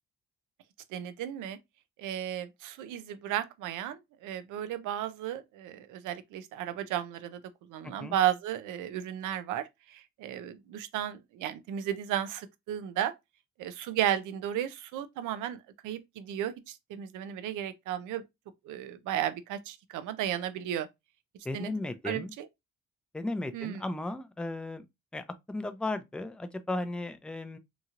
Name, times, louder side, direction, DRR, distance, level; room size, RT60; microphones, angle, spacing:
voice 1, 0.9-1.6 2.0-7.4 7.7-13.1 13.6-18.2 18.6-20.9 21.5-21.7 22.0-22.5 23.5-23.8, right 11 dB, 85° right, 0.5 m, -34 dB
voice 2, 21.4-22.3 23.1-24.8 25.1-27.6, left 2 dB, 5° left, 0.4 m, -35 dB
2.9 x 2.7 x 2.4 m
cardioid pair, 90°, 30 cm